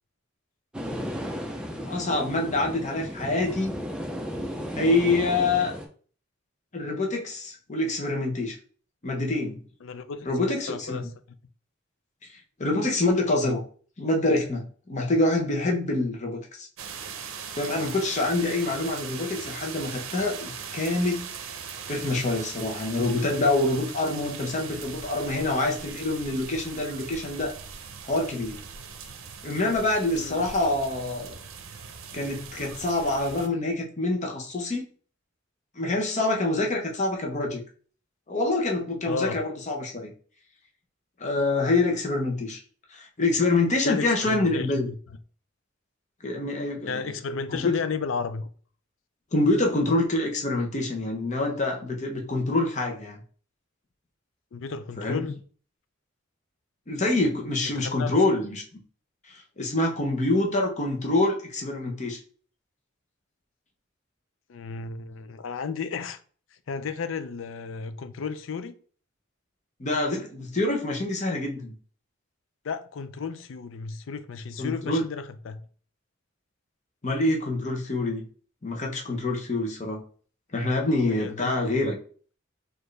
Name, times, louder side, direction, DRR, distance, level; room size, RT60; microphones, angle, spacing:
sound 1, 0.7-5.9, equal, 5° right, 0.5 m, -34 dB
voice 1, 1.9-3.8 4.7-5.7 6.7-8.6 9.0-9.6 10.2-11.1 12.3-13.6 14.0-16.7 17.5-21.3 21.9-27.6 28.1-28.6 29.4-31.3 32.1-34.8 35.8-37.6 38.3-40.1 41.2-42.6 42.9-44.9 46.2-47.2 47.5-47.8 49.3-53.2 55.0-55.2 56.9-58.8 59.2-62.2 69.8-71.7 74.6-75.0 77.0-78.3 78.6-80.0 80.5-82.0, left 2 dB, 35° left, 0.8 m, -26 dB
voice 2, 9.8-11.1 30.1-30.4 39.1-39.4 43.8-44.9 46.9-48.5 54.5-55.4 57.8-58.1 64.5-66.2 66.7-68.7 72.6-75.6 81.1-81.6, left 5 dB, 75° left, 0.4 m, -33 dB
sound 2, 16.8-33.5, right 6 dB, 90° right, 0.6 m, -40 dB
4.4 x 2.5 x 3.2 m
head